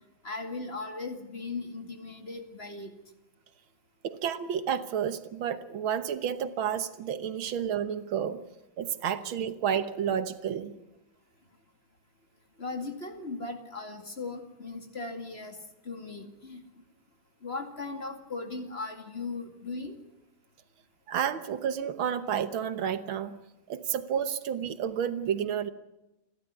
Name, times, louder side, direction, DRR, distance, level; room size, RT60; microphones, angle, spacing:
voice 1, 0.2-2.9 12.6-15.6 15.8-16.6 17.4-20.0, left 3 dB, 30° left, 6 dB, 2.4 m, -38 dB
voice 2, 4.0-8.4 8.8-10.7 21.1-23.4 23.7-25.7, right 8 dB, 80° right, 11 dB, 1.9 m, -30 dB
29.5 x 12.0 x 9.5 m, 0.96 s
omnidirectional pair, 2.2 m